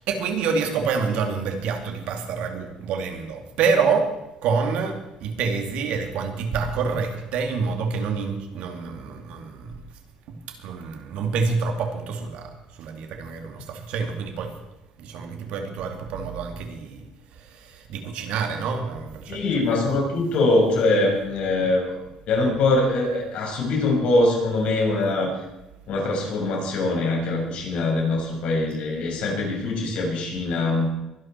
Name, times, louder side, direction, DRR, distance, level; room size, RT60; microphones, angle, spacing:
voice 1, 0.0-4.1 4.4-9.8 10.3-14.6 15.0-17.1 17.4-19.4, right 5 dB, 75° right, 5 dB, 2.6 m, -27 dB
voice 2, 19.3-22.0 22.3-25.3 25.9-30.9, left 2 dB, 65° left, 0 dB, 5.9 m, -23 dB
23.0 x 11.5 x 4.6 m, 0.95 s
cardioid pair, 120°, 2 cm